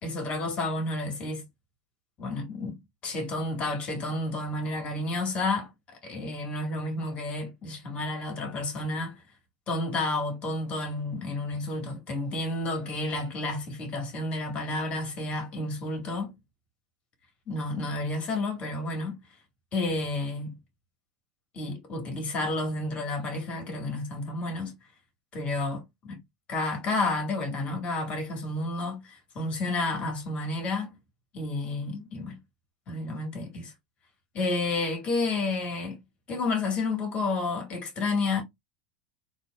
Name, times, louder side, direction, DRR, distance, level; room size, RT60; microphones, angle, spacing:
voice 1, 0.0-1.4 2.2-5.7 6.0-9.2 9.7-16.3 17.5-19.2 19.7-20.6 21.5-24.7 25.3-26.2 26.5-31.0 31.3-32.4 32.9-33.7 34.3-36.0 36.3-38.4, left 2 dB, 35° left, 1.7 m, -31 dB
3.9 x 2.7 x 2.3 m
figure-of-eight pair, 85°, 4 cm